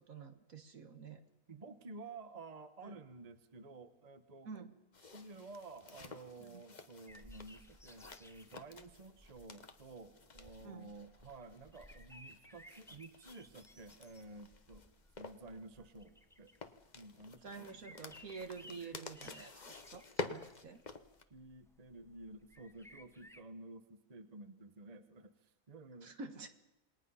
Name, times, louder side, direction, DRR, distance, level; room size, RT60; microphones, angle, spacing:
voice 1, 0.1-1.2 2.8-2.9 4.5-4.8 6.4-6.6 10.6-10.9 17.4-20.8 26.0-26.5, right 5 dB, 60° right, 7 dB, 1.9 m, -49 dB
voice 2, 1.5-4.7 5.0-14.8 15.2-16.5 16.9-18.1 18.6-18.8 21.3-26.2, right 3 dB, 30° right, 9 dB, 1.1 m, -52 dB
sound 1, 4.9-21.2, left 3 dB, 30° left, 1.0 m, -51 dB
sound 2, 7.1-23.4, equal, 5° left, 0.6 m, -60 dB
27.5 x 20.5 x 5.6 m, 0.96 s
omnidirectional pair, 1.6 m